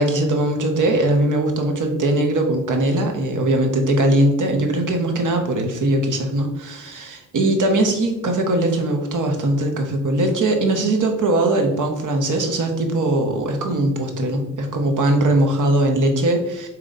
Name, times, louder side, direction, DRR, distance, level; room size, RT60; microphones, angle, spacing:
voice 1, 0.0-16.7, right 1 dB, 65° right, 3 dB, 1.0 m, -20 dB
4.0 x 3.0 x 3.8 m, 0.89 s
supercardioid pair, 45°, 34 cm